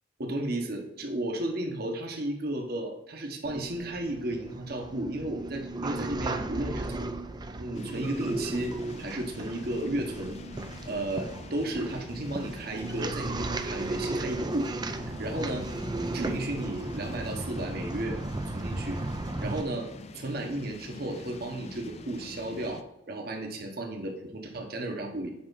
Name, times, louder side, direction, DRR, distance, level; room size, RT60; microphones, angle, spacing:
voice 1, 0.2-7.1 7.6-10.4 10.8-15.7 16.0-18.2 18.5-19.0 19.4-19.9 20.1-25.3, right 1 dB, 55° right, 2 dB, 1.3 m, -33 dB
sound 1, 3.4-19.6, right 2 dB, 25° right, 0.5 m, -35 dB
sound 2, 7.7-22.8, left 3 dB, 35° left, 0.4 m, -46 dB
7.7 x 5.0 x 4.1 m, 0.90 s
head